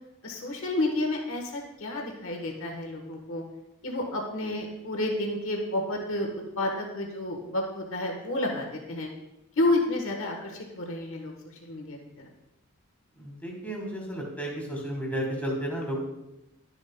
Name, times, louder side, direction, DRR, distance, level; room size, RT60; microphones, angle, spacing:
voice 1, 0.2-3.4 3.8-6.3 6.6-9.1 9.6-11.3 11.6-12.3, left 2 dB, 65° left, 1 dB, 1.2 m, -30 dB
voice 2, 13.1-16.0, right 1 dB, 5° left, -1 dB, 1.5 m, -33 dB
11.5 x 7.0 x 2.2 m, 0.94 s
head